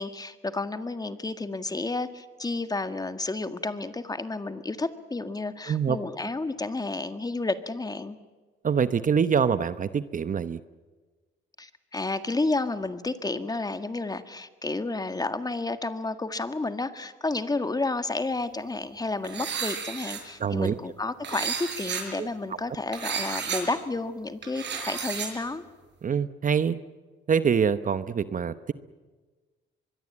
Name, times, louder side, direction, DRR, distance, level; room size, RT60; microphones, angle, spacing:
voice 1, 0.0-8.2 11.6-25.6, left 3 dB, 20° left, 10 dB, 1.8 m, -31 dB
voice 2, 5.7-6.0 8.6-10.6 20.4-20.8 22.2-22.6 26.0-26.8 27.3-28.7, right 7 dB, 40° right, 13 dB, 1.0 m, -25 dB
sound 1, 19.2-20.2 21.2-22.0 22.9-23.6 24.4-25.3, right 6 dB, 60° right, 6.7 m, -32 dB
24.0 x 22.0 x 8.7 m, 1.3 s
cardioid pair, 90°, 20 cm